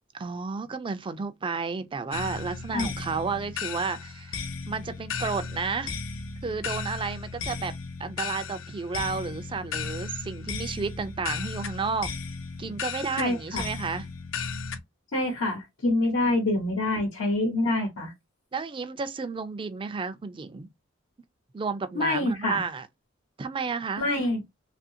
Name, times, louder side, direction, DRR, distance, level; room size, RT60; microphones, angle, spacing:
voice 1, 0.1-5.9 6.4-7.7 8.0-12.1 12.6-14.0 16.3-16.4 18.5-20.7 21.5-22.9 23.4-24.1, right 4 dB, 25° right, 0.4 m, -32 dB
sound 1, 2.1-14.8, left 5 dB, 70° left, 0.5 m, -35 dB
voice 2, 13.2-13.6 15.1-18.1 21.9-22.6 24.0-24.4, left 2 dB, 90° left, 1.1 m, -26 dB
2.7 x 2.5 x 2.7 m
head